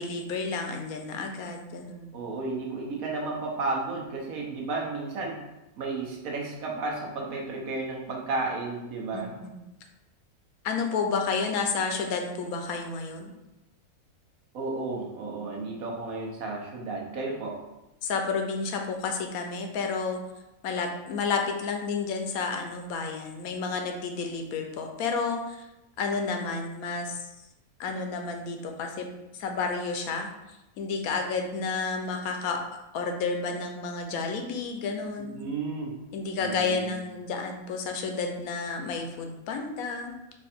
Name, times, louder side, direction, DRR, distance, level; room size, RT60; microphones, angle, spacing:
voice 1, 0.0-2.1 9.1-9.6 10.6-13.3 15.4-15.8 18.0-20.2 20.6-25.7 26.0-27.2 27.8-29.1 29.3-30.3 30.8-35.4 36.1-40.1, left 4 dB, 80° left, 4 dB, 1.1 m, -31 dB
voice 2, 2.1-5.4 5.8-9.3 14.5-17.6 35.3-36.0 36.4-36.9, right 3 dB, 70° right, -1 dB, 1.3 m, -33 dB
4.6 x 2.5 x 4.3 m, 0.95 s
omnidirectional pair, 1.6 m